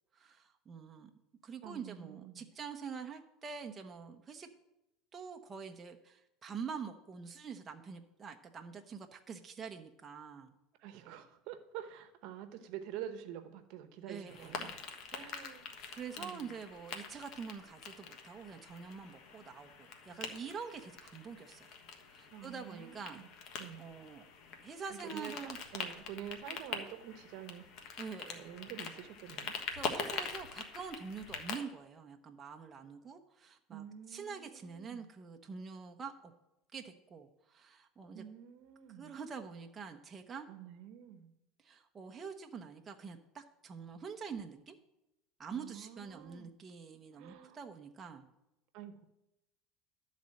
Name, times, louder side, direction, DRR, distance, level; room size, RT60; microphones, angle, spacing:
voice 1, 0.1-1.1 1.4-4.5 5.1-10.6 14.1-14.8 15.2-15.3 15.9-21.7 22.1-23.2 23.8-24.3 24.6-25.6 28.0-28.5 29.7-36.3 36.7-38.2 38.9-40.5 41.6-44.8 45.4-48.3, right 6 dB, 25° right, 4 dB, 0.8 m, -46 dB
voice 2, 1.6-2.5 10.8-14.7 15.1-15.7 16.2-16.5 22.3-23.3 23.6-23.9 24.9-27.6 28.3-29.6 33.7-35.1 38.1-39.1 40.5-41.3 45.5-46.5 47.1-47.6 48.7-49.0, right 10 dB, 60° right, 8 dB, 1.0 m, -48 dB
sound 1, 14.3-31.6, left 5 dB, 55° left, 1.2 m, -44 dB
12.0 x 4.1 x 7.6 m, 0.91 s
supercardioid pair, 125°, 0 cm